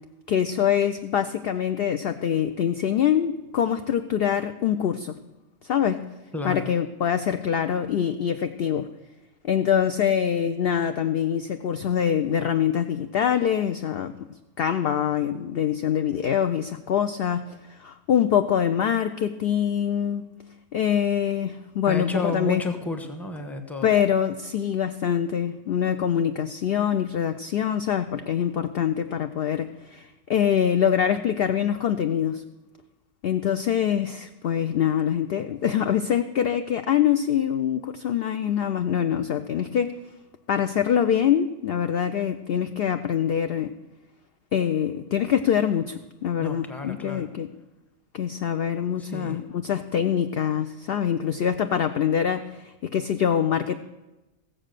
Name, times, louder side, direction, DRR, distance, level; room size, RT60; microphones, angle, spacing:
voice 1, 0.3-5.1 5.6-6.0 6.4-8.9 9.4-14.1 14.6-20.3 20.7-22.6 23.8-32.4 33.2-40.0 40.5-43.7 44.5-47.5 48.1-53.8, left 9 dB, 60° left, 8 dB, 0.6 m, -24 dB
voice 2, 6.3-6.7 21.9-23.9 46.4-47.3 49.0-49.5, left 2 dB, ahead, 6 dB, 0.9 m, -32 dB
15.5 x 7.4 x 6.6 m, 1.0 s
omnidirectional pair, 1.4 m